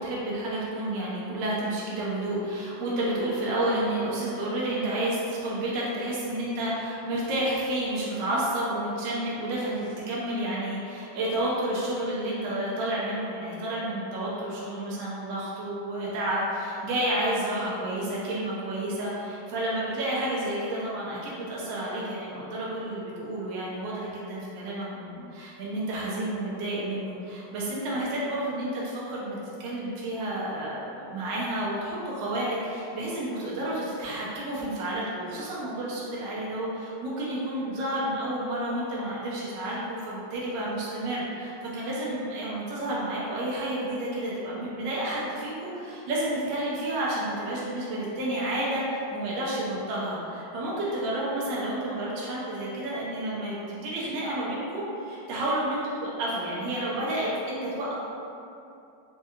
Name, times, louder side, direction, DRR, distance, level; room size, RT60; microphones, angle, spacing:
voice 1, 0.0-57.9, right 1 dB, 70° right, -6 dB, 1.3 m, -30 dB
4.5 x 2.3 x 2.8 m, 2.7 s
omnidirectional pair, 2.2 m